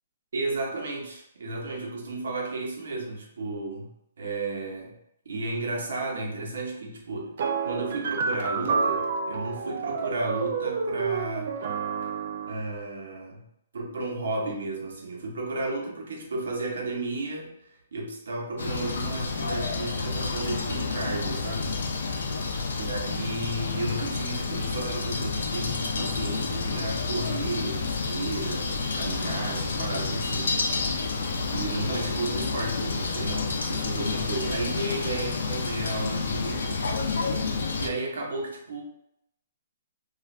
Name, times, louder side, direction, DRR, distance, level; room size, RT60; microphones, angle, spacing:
voice 1, 0.3-3.9 4.2-5.0 5.2-7.4 7.6-11.5 12.5-13.4 13.7-22.3 22.8-31.0 31.5-36.9 37.7-38.8, right 2 dB, 75° right, -1 dB, 0.9 m, -33 dB
sound 1, 7.4-12.6, right 5 dB, 50° right, 0.3 m, -29 dB
sound 2, 18.6-37.9, left 4 dB, 75° left, 0.4 m, -29 dB
3.1 x 2.4 x 2.4 m, 0.80 s
hypercardioid pair, 170°, 0 cm